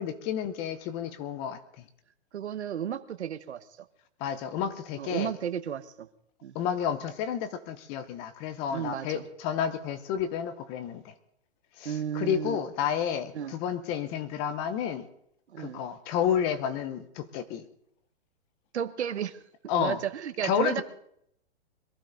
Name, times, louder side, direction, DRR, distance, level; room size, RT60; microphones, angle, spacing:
voice 1, 0.0-1.8 4.2-5.3 6.5-11.1 11.8-15.1 15.6-17.6 19.7-20.0 20.4-20.8, left 8 dB, 15° left, 12 dB, 0.7 m, -31 dB
voice 2, 2.3-3.6 5.0-6.1 6.4-6.6 8.7-9.2 11.8-12.6 13.3-13.5 15.5-15.8 18.7-19.4 19.8-20.8, right 9 dB, 85° right, 10 dB, 1.3 m, -33 dB
22.5 x 15.0 x 3.9 m, 0.71 s
hypercardioid pair, 165°, 33 cm